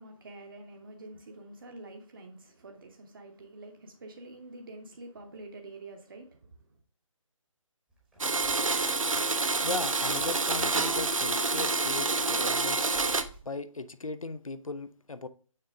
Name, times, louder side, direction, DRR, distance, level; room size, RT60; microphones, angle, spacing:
voice 1, 0.0-6.8, right 2 dB, 40° right, 0.8 m, -47 dB
sound 1, 7.9-13.4, right 1 dB, ahead, 0.9 m, -53 dB
Domestic sounds home sounds, 8.2-13.2, right 3 dB, 70° right, 0.6 m, -28 dB
voice 2, 9.6-12.9 13.4-15.3, left 3 dB, 75° left, 0.6 m, -38 dB
6.7 x 4.1 x 3.5 m
figure-of-eight pair, 150°, 18 cm